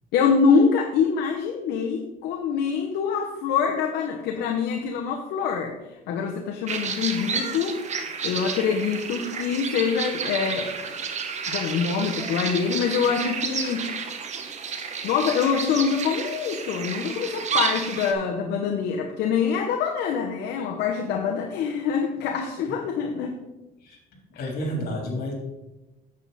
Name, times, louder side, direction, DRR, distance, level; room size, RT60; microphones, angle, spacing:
voice 1, 0.1-5.8 6.1-11.0 11.5-13.9 15.0-23.4 24.3-24.5, left 6 dB, 80° left, 2 dB, 1.0 m, -25 dB
sound 1, 6.7-18.1, right 6 dB, 45° right, 1.3 m, -31 dB
voice 2, 24.4-25.3, equal, 65° left, 0 dB, 3.6 m, -30 dB
9.0 x 8.0 x 4.1 m, 1.0 s
cardioid pair, 110°, 17 cm